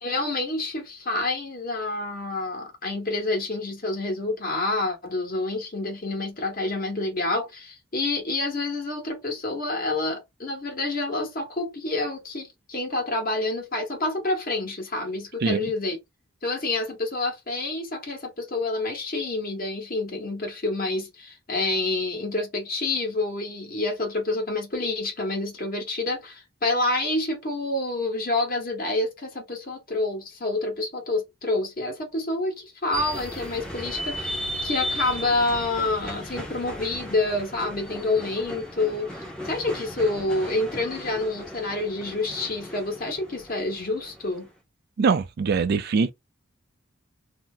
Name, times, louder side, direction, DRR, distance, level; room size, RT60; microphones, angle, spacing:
voice 1, 0.0-16.0 16.4-44.5, left 2 dB, 50° left, 1.2 m, -28 dB
sound 1, 32.9-44.5, equal, 5° left, 0.7 m, -36 dB
voice 2, 45.0-46.1, right 5 dB, 55° right, 0.4 m, -22 dB
2.7 x 2.0 x 3.7 m
head